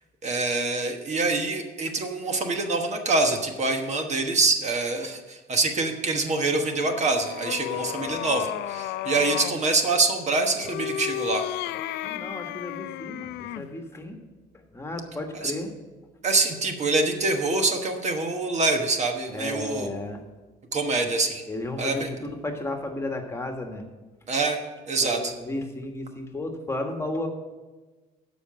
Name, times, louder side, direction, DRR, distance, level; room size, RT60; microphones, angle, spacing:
voice 1, 0.2-11.4 15.3-15.5 16.2-19.9 20.7-21.4 21.8-22.1 24.3-24.6 24.9-25.3, right 3 dB, 40° right, 5 dB, 1.2 m, -25 dB
sound 1, 6.6-9.6 10.6-13.7, left 13 dB, 85° left, 0.4 m, -33 dB
voice 2, 7.7-8.2 12.0-14.2 14.5-15.7 19.3-20.2 21.5-23.8 25.0-27.3, left 2 dB, 15° left, 4 dB, 1.5 m, -33 dB
12.5 x 5.3 x 7.6 m, 1.2 s
cardioid pair, 110°, 17 cm